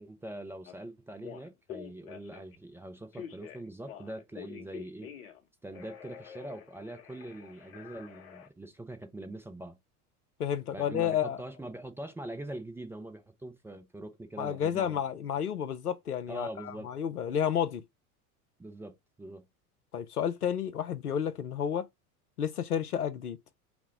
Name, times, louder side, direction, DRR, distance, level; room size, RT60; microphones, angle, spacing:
voice 1, 0.0-5.1 5.6-9.8 10.7-15.0 16.3-16.9 18.6-19.5, right 1 dB, 5° right, 0.4 m, -43 dB
Telephone, 0.7-0.8 1.2-2.6 3.1-5.4 5.7-8.5, left 9 dB, 65° left, 1.1 m, -47 dB
voice 2, 10.4-11.4 14.4-16.5 16.8-17.8 19.9-21.8 22.4-23.4, left 9 dB, 85° left, 0.6 m, -31 dB
5.1 x 2.0 x 4.5 m
figure-of-eight pair, 75°, 45 cm